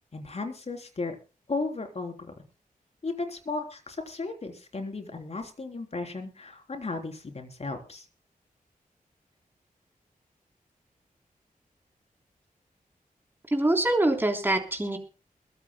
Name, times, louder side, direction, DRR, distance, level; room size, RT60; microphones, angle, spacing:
voice 1, 0.1-1.2 1.5-2.3 3.0-8.1, left 3 dB, 45° left, 5 dB, 3.6 m, -35 dB
voice 2, 13.5-15.0, right 1 dB, 15° right, 3 dB, 3.5 m, -24 dB
22.0 x 16.0 x 2.2 m, 0.34 s
wide cardioid pair, 135°, 15 cm